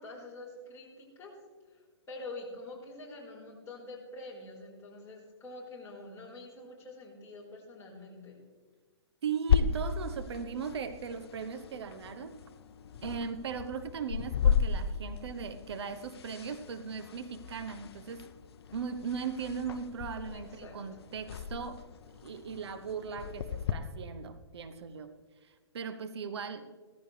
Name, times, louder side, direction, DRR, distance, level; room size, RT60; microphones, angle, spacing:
voice 1, 0.0-1.3 1.7-8.4 20.3-20.8, left 2 dB, 20° left, -4 dB, 4.7 m, -46 dB
voice 2, 9.2-12.3 13.0-18.3 18.7-21.8 22.2-25.1 25.7-26.7, right 6 dB, 65° right, 10 dB, 1.0 m, -38 dB
sound 1, 9.5-23.7, left 7 dB, 65° left, 0.8 m, -35 dB
17.0 x 14.5 x 3.4 m, 1.5 s
hypercardioid pair, 135°, 15 cm